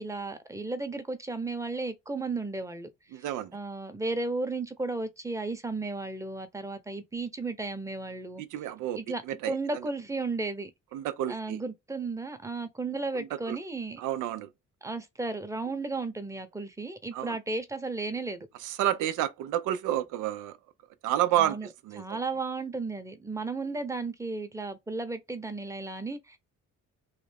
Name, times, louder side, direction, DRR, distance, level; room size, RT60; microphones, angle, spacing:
voice 1, 0.0-2.9 3.1-3.2 3.5-8.4 8.9-10.7 11.3-14.0 14.8-18.5 21.4-21.7 22.0-26.4, right 3 dB, 10° right, 0.8 m, -34 dB
voice 2, 3.1-3.5 8.4-9.0 9.3-9.5 10.9-11.6 13.1-13.6 14.0-14.5 17.1-17.4 18.6-20.6 21.0-21.6 21.8-22.0, right 12 dB, 90° right, 0.6 m, -30 dB
3.3 x 2.5 x 3.3 m
cardioid pair, 90°, 30 cm